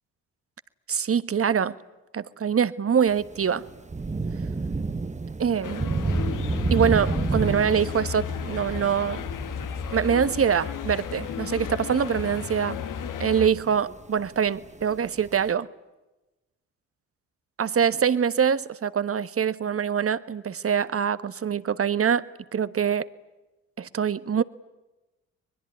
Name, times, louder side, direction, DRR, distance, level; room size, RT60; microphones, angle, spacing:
voice 1, 0.9-1.8 2.1-3.6 5.4-5.9 6.7-9.2 9.9-12.8 13.2-15.7 17.6-23.1 23.8-24.4, right 7 dB, 40° right, 1.4 m, -24 dB
Thunder / Rain, 3.1-15.5, right 3 dB, 20° right, 1.2 m, -31 dB
sound 1, 5.6-13.5, left 8 dB, 65° left, 1.8 m, -34 dB
23.5 x 21.5 x 9.5 m
supercardioid pair, 55°, 34 cm